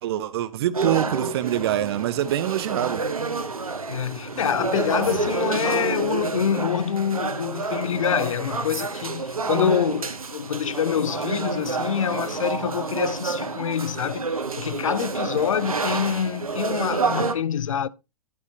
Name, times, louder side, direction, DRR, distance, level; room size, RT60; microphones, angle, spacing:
voice 1, 0.0-3.0, right 12 dB, 45° right, 0.9 m, -25 dB
sound 1, 0.7-17.4, right 4 dB, 75° right, 1.4 m, -29 dB
voice 2, 3.9-17.9, left 8 dB, 65° left, 0.6 m, -26 dB
11.5 x 8.1 x 2.7 m
figure-of-eight pair, 105°, 18 cm